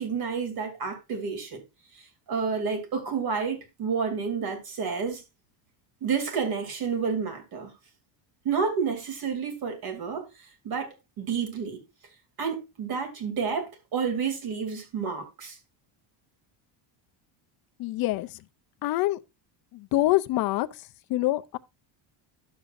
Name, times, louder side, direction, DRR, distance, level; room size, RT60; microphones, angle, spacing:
voice 1, 0.0-1.6 1.9-5.2 6.0-7.7 8.4-10.3 10.6-11.8 12.4-15.6, right 6 dB, 45° right, 2.8 m, -30 dB
voice 2, 17.8-18.3 18.8-19.2 19.7-20.7 21.1-21.6, left 16 dB, 50° left, 0.5 m, -25 dB
11.5 x 7.4 x 2.5 m
cardioid pair, 165°, 49 cm